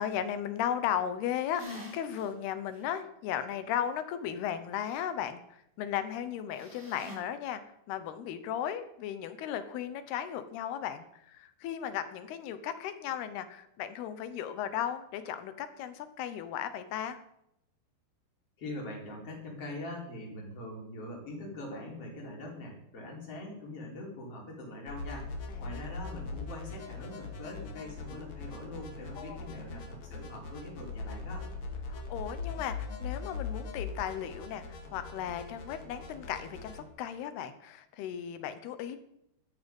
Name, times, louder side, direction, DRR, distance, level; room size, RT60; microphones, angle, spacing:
voice 1, 0.0-5.4 5.8-7.6 7.9-17.2 25.5-25.7 29.2-29.5 31.9-39.0, left 9 dB, 70° left, 11 dB, 2.7 m, -36 dB
sound 1, 1.6-2.3 2.7-2.8 6.5-7.2, left 2 dB, 15° right, 3.6 m, -44 dB
voice 2, 18.6-25.3 25.6-31.5, left 1 dB, 30° left, -2 dB, 4.9 m, -43 dB
sound 2, 24.9-36.8, left 4 dB, 50° left, 2.7 m, -41 dB
14.5 x 13.0 x 5.4 m, 0.79 s
omnidirectional pair, 5.4 m